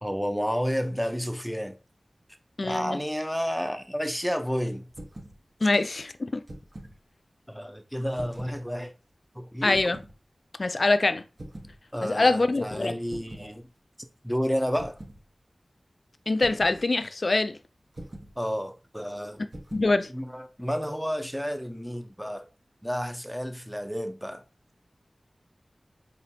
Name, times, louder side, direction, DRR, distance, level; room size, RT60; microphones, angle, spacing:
voice 1, 0.0-1.8 2.6-4.9 7.5-8.9 9.4-9.8 11.9-13.7 14.2-15.0 18.4-19.4 20.1-22.5 22.8-24.4, equal, ahead, 0.7 m, -31 dB
voice 2, 2.6-3.0 5.6-6.4 9.6-10.0 10.6-11.2 12.0-12.9 16.3-17.6 19.7-20.1, left 2 dB, 60° left, 0.4 m, -24 dB
sound 1, 4.9-5.4 6.3-7.0 8.1-8.6 9.7-10.1 11.4-11.8 13.1-13.5 14.7-15.2 16.4-16.8 17.9-18.3 19.5-19.9, right 1 dB, 50° right, 1.3 m, -43 dB
4.2 x 3.1 x 2.7 m
wide cardioid pair, 55°, 0 cm